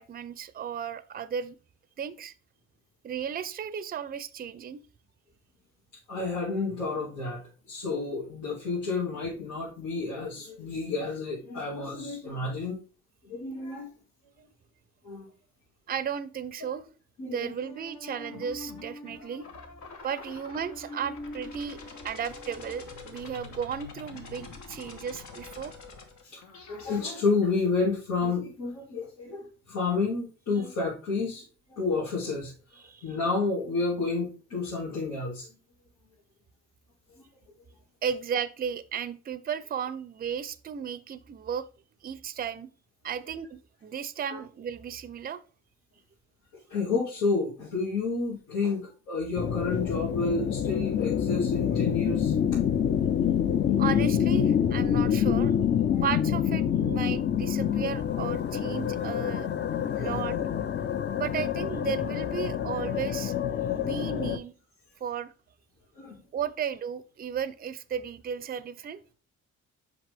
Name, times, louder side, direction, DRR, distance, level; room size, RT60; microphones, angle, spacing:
voice 1, 0.0-1.6 2.0-2.3 3.0-4.8 15.9-16.9 17.3-19.5 20.0-21.8 22.0-25.7 32.7-33.2 38.0-41.6 42.0-42.7 43.0-45.4 53.8-55.6 56.0-59.5 60.0-60.4 61.2-63.3 63.7-64.5 65.0-65.3 66.3-69.0, right 8 dB, 30° right, 0.5 m, -34 dB
voice 2, 6.1-12.8 13.3-13.9 15.0-15.3 17.2-17.5 26.2-26.4 26.7-31.4 31.7-32.5 33.0-35.5 37.2-37.3 44.3-44.4 46.7-52.3 54.8-55.0 55.9-56.0 59.9-60.2 66.0-66.2, left 4 dB, 85° left, 2.2 m, -30 dB
sound 1, 17.6-27.0, left 3 dB, 70° left, 1.3 m, -44 dB
sound 2, 49.3-64.4, left 9 dB, 35° left, 0.5 m, -27 dB
5.8 x 5.1 x 3.4 m
cardioid pair, 90°, 30 cm